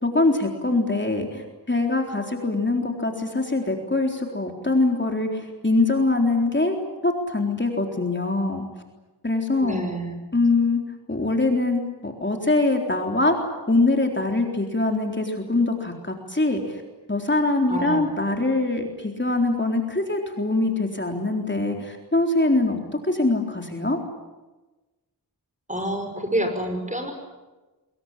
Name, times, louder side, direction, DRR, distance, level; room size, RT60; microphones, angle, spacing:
voice 1, 0.0-6.8 7.0-8.7 9.2-9.8 10.3-10.8 11.1-13.4 13.7-16.8 17.1-24.0, left 2 dB, 25° left, 2 dB, 3.9 m, -23 dB
voice 2, 9.6-10.2 17.7-18.1 25.7-27.1, right 1 dB, 20° right, 5 dB, 5.7 m, -27 dB
24.5 x 22.5 x 10.0 m, 1.2 s
wide cardioid pair, 60°, 41 cm